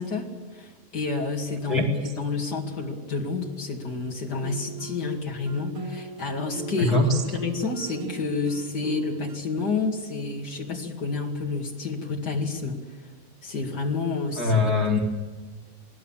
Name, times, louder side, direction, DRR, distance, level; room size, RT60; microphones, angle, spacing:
voice 1, 0.0-7.0 7.2-12.8 13.4-14.6, left 4 dB, 85° left, -1 dB, 0.9 m, -29 dB
sound 1, 4.4-9.4, right 4 dB, 55° right, 1.5 m, -39 dB
voice 2, 14.4-15.0, left 3 dB, 45° left, 0 dB, 1.1 m, -21 dB
28.5 x 20.5 x 7.4 m, 1.3 s
omnidirectional pair, 5.9 m